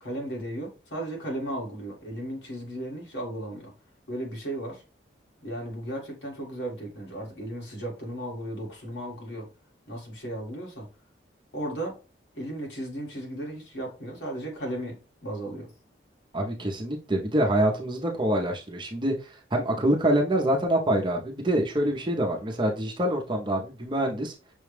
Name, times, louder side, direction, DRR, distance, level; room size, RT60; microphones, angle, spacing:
voice 1, 0.0-3.7 4.1-4.8 5.4-9.5 9.9-10.9 11.5-12.0 12.3-15.7, right 1 dB, 80° left, 1.9 m, -35 dB
voice 2, 16.3-19.1 19.5-24.3, right 1 dB, 25° right, 0.8 m, -25 dB
6.1 x 2.3 x 3.3 m
head